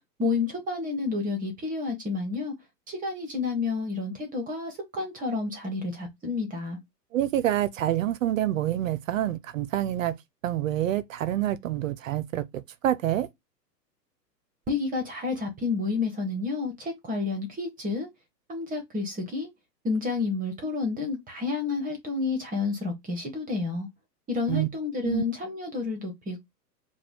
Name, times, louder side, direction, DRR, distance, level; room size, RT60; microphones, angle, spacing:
voice 1, 0.2-2.5 2.9-6.8 14.7-18.1 18.5-19.5 19.8-23.9 24.3-26.4, left 4 dB, 15° right, 1.0 m, -30 dB
voice 2, 7.1-10.1 10.4-13.3 24.5-24.7 25.0-25.2, right 12 dB, 55° right, 0.5 m, -27 dB
4.8 x 2.3 x 3.4 m
hypercardioid pair, 120°, 50 cm